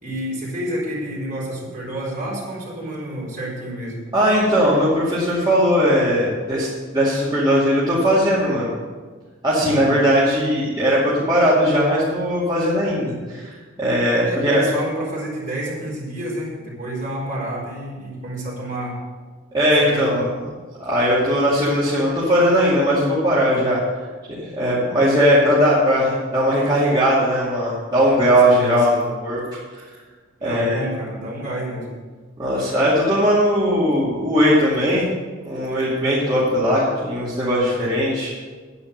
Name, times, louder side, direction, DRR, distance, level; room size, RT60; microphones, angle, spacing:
voice 1, 0.0-4.0 9.6-9.9 14.2-19.0 19.7-20.3 28.4-29.1 30.4-31.9, right 1 dB, 40° right, -5 dB, 4.2 m, -29 dB
voice 2, 4.1-6.7 6.9-8.7 9.4-14.6 19.5-20.2 20.8-23.8 24.4-29.4 30.4-30.8 32.4-35.1 35.5-38.3, equal, 20° right, -9 dB, 2.4 m, -19 dB
9.9 x 9.5 x 6.6 m, 1.4 s
head